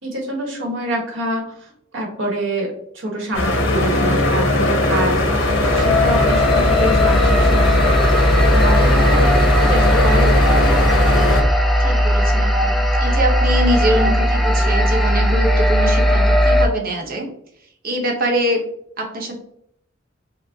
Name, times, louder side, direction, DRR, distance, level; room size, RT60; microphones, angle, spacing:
voice 1, 0.0-10.8, right 1 dB, 75° right, 0 dB, 1.3 m, -26 dB
sound 1, 3.3-11.4, left 2 dB, 80° left, 1.1 m, -18 dB
sound 2, 5.1-16.7, equal, ahead, 0.3 m, -17 dB
voice 2, 11.8-17.3 17.8-18.6 19.0-19.3, equal, 50° right, 2 dB, 0.8 m, -23 dB
6.0 x 2.1 x 2.7 m, 0.71 s
head